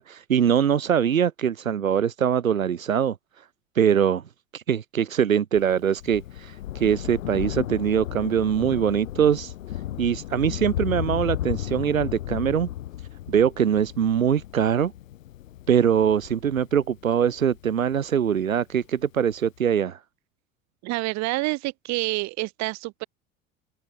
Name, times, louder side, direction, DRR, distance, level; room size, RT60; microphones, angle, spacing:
voice 1, 0.0-3.2 3.7-4.2 4.5-9.5 10.0-12.7 13.3-14.9 15.7-20.0, right 8 dB, 90° right, 0.9 m, -23 dB
Thunder, 5.6-18.4 19.3-19.4, left 13 dB, 75° left, 1.8 m, -34 dB
voice 2, 20.8-23.0, right 22 dB, 45° right, 0.8 m, -28 dB
figure-of-eight pair, 75°, 40 cm